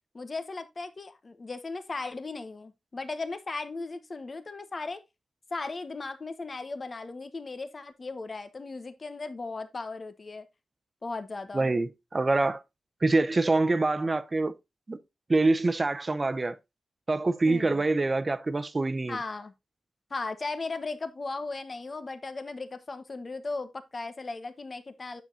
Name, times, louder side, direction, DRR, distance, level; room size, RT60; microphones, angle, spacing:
voice 1, 0.1-5.0 5.5-10.5 11.0-11.7 17.4-17.8 19.1-19.5 20.1-25.2, left 3 dB, 45° left, 1.2 m, -37 dB
voice 2, 11.5-12.6 13.0-14.6 14.9-15.0 15.3-16.6 17.1-19.2, right 2 dB, 35° right, 0.8 m, -25 dB
8.8 x 7.1 x 2.7 m
cardioid pair, 70°, 0 cm